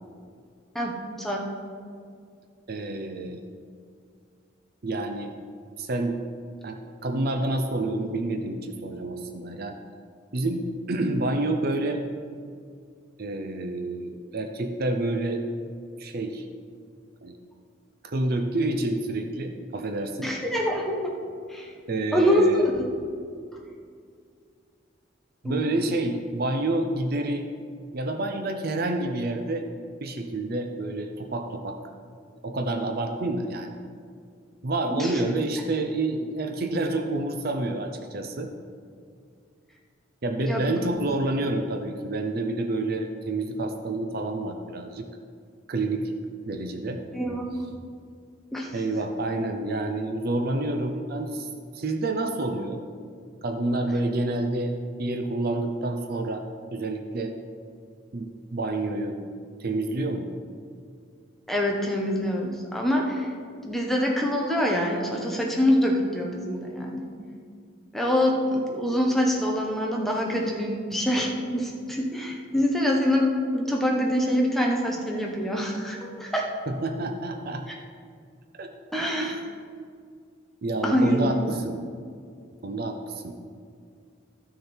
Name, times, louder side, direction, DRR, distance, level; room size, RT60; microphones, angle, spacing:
voice 1, 0.7-1.4 20.2-21.1 21.5-21.7 22.1-22.9 25.4-25.6 34.9-35.1 40.4-40.7 47.1-47.6 48.5-48.7 61.5-63.3 63.6-67.1 67.9-76.4 78.9-79.4 80.8-81.3, equal, ahead, -1 dB, 1.1 m, -25 dB
voice 2, 2.7-3.4 4.8-5.4 5.8-6.2 6.6-9.7 10.3-12.0 13.2-15.4 16.0-16.4 17.2-17.4 18.0-20.3 21.9-22.7 25.4-27.5 27.9-29.7 30.0-31.8 32.4-33.8 34.6-38.5 40.2-45.1 45.7-46.1 46.5-47.0 48.7-51.5 51.7-52.9 53.4-54.7 55.0-56.4 56.7-57.3 58.1-59.2 59.6-60.3 76.7-77.6 78.6-78.7 79.1-79.4 80.6-81.8 82.6-83.4, right 2 dB, 50° right, 5 dB, 0.6 m, -28 dB
13.5 x 6.5 x 4.4 m, 2.2 s
head